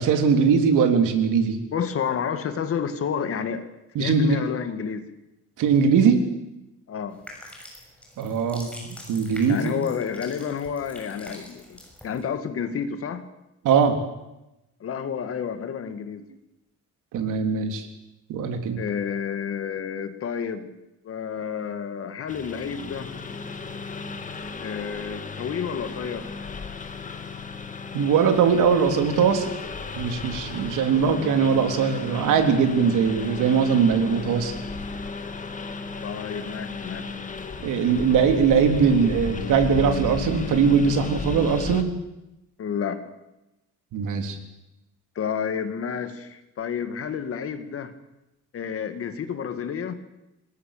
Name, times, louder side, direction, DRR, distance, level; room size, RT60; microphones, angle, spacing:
voice 1, 0.0-1.6 3.9-4.4 5.6-6.2 8.2-9.8 13.6-14.0 17.1-17.9 18.3-18.8 27.9-29.5 29.9-34.5 37.6-41.9 43.9-44.4, right 6 dB, 85° right, 6 dB, 3.5 m, -21 dB
voice 2, 1.7-3.7 4.0-5.1 6.9-7.2 9.5-11.8 12.0-13.3 14.8-16.3 18.8-20.7 21.0-23.1 24.6-26.3 36.0-37.2 42.6-43.1 45.2-47.9 48.5-49.9, left 7 dB, 45° left, 9 dB, 2.1 m, -30 dB
sound 1, 7.1-12.2, left 1 dB, 5° left, 6.7 m, -45 dB
Engine, 22.3-41.8, left 4 dB, 25° left, 1.8 m, -35 dB
26.0 x 20.5 x 6.8 m, 0.93 s
cardioid pair, 165°, 30 cm